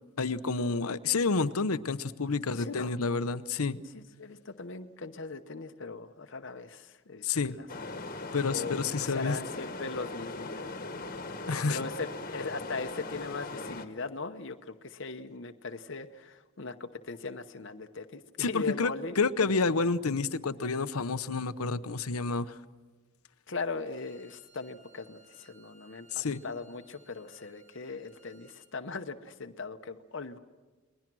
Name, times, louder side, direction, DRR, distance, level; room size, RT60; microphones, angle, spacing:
voice 1, 0.2-3.8 7.2-7.6 8.3-9.4 11.5-11.8 18.4-22.6 26.1-26.4, left 4 dB, 85° left, 13 dB, 0.9 m, -29 dB
voice 2, 2.6-2.9 4.2-7.7 8.5-11.1 11.7-19.1 23.5-30.4, left 4 dB, 55° left, 7 dB, 0.9 m, -39 dB
sound 1, 7.7-13.9, left 3 dB, 40° left, 1.4 m, -39 dB
Bowed string instrument, 23.9-28.6, right 3 dB, 85° right, 6.8 m, -62 dB
30.0 x 21.0 x 6.2 m, 1.3 s
head